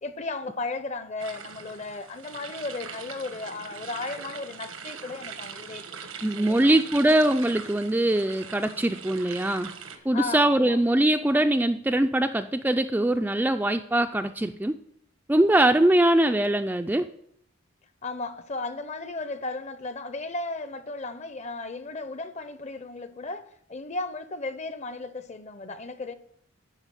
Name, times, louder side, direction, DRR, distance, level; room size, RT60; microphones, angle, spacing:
voice 1, 0.0-5.8 6.2-6.8 10.1-10.8 18.0-26.1, left 3 dB, 35° left, 0.6 m, -35 dB
sound 1, 1.2-10.0, right 6 dB, 90° right, 1.3 m, -41 dB
voice 2, 6.2-9.7 10.1-14.8 15.3-17.1, right 1 dB, 10° right, 0.3 m, -22 dB
11.5 x 4.9 x 7.4 m
head